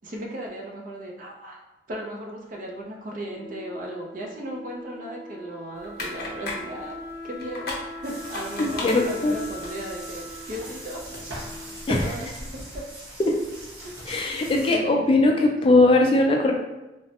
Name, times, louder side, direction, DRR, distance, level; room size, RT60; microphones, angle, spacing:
voice 1, 0.0-1.6 1.9-7.0 7.2-7.8 8.0-11.0 11.6-12.8 13.8-13.9 14.3-14.4 14.7-15.6, right 1 dB, 45° right, 0 dB, 0.5 m, -36 dB
Wind instrument woodwind instrument, 3.3-12.0, left 1 dB, 15° right, 0.9 m, -41 dB
sound 1, 5.8-11.2, left 2 dB, 55° left, 0.7 m, -38 dB
sound 2, 8.0-14.7, right 1 dB, 75° right, 1.1 m, -41 dB
voice 2, 8.6-9.4 11.9-12.0 13.2-13.5 14.1-16.5, left 2 dB, 30° left, 1 dB, 0.3 m, -20 dB
3.2 x 2.1 x 2.8 m, 1.0 s
head